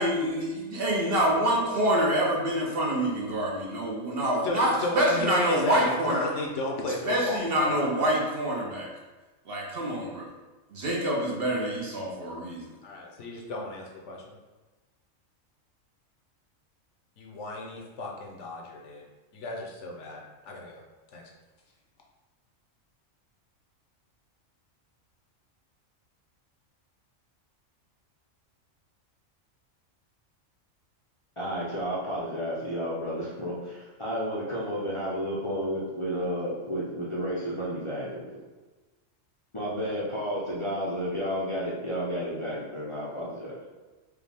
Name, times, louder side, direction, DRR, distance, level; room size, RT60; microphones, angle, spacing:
voice 1, 0.0-6.3 7.0-8.9 9.5-10.3 10.7-12.7, right 1 dB, 55° right, -2 dB, 0.8 m, -26 dB
voice 2, 4.4-7.9 12.8-14.4 17.2-19.0 19.3-20.2 20.5-20.8 21.1-21.2, left 2 dB, 70° left, -1 dB, 1.0 m, -33 dB
voice 3, 31.4-38.4 39.5-43.6, equal, 35° left, -8 dB, 0.6 m, -32 dB
4.9 x 2.3 x 3.4 m, 1.2 s
omnidirectional pair, 1.3 m